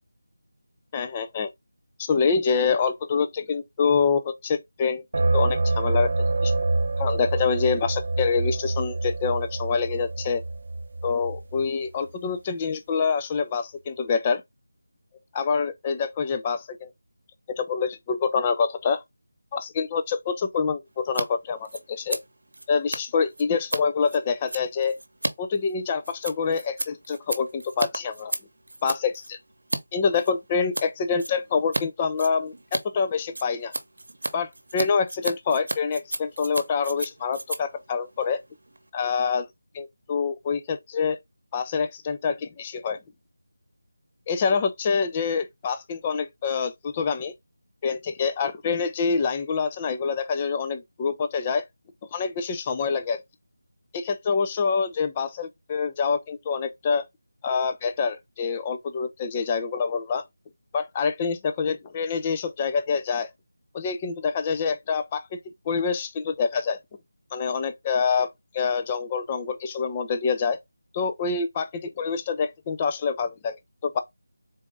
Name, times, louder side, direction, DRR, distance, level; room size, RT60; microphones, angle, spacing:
voice 1, 0.9-1.5 2.0-5.0 5.3-6.5 7.0-10.4 11.0-14.4 15.3-16.9 17.6-19.0 19.5-22.2 22.7-24.9 25.4-28.3 28.8-29.4 29.9-33.7 34.3-38.4 38.9-39.5 39.7-41.2 41.5-43.0 44.3-47.3 47.8-51.6 52.1-53.2 53.9-57.0 57.4-60.2 60.7-63.3 63.7-65.4 65.7-66.8 67.3-68.3 68.5-70.6 70.9-73.6 73.8-74.0, left 5 dB, 15° left, 0.3 m, -26 dB
sound 1, 5.1-11.7, right 2 dB, 45° right, 0.5 m, -26 dB
Scissors, 21.0-21.2 21.5-29.8 30.1-30.9 31.2-31.8 32.1-38.9, right 2 dB, 75° right, 0.9 m, -33 dB
4.0 x 2.5 x 3.3 m
figure-of-eight pair, 175°, 0 cm